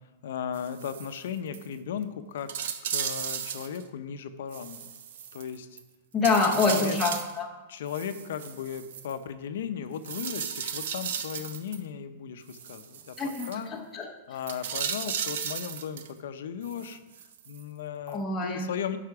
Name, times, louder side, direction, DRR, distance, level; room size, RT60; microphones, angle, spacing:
voice 1, 0.2-4.9 5.3-5.8 6.5-7.0 7.7-13.7 14.3-17.0 17.5-19.0, left 8 dB, 65° left, 10 dB, 0.6 m, -36 dB
sound 1, 0.5-1.2 1.5-1.7 2.0-2.1 2.5-3.8 4.5-5.8 6.2-7.4 7.9-9.1 10.0-11.8 12.5-13.6 14.4-16.1 16.6-17.6 18.1-18.2, right 8 dB, 60° right, 0.6 m, -35 dB
voice 2, 6.1-7.5 13.2-14.1 18.1-18.7, left 4 dB, 10° left, -1 dB, 0.7 m, -26 dB
9.8 x 5.7 x 4.7 m, 1.1 s
supercardioid pair, 180°, 0 cm